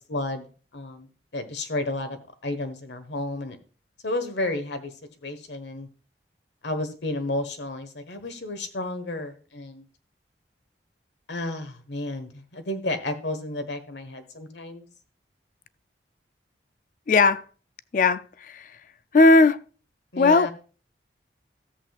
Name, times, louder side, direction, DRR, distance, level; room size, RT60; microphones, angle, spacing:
voice 1, 0.1-0.4 0.7-1.1 1.3-3.6 4.0-4.9 5.2-5.9 6.6-9.8 11.3-14.9 20.1-20.5, left 2 dB, 80° left, 1.4 m, -32 dB
voice 2, 17.1-17.4 17.9-18.7 19.1-19.6 20.2-20.5, left 3 dB, 45° left, 0.4 m, -18 dB
13.5 x 7.9 x 2.4 m
head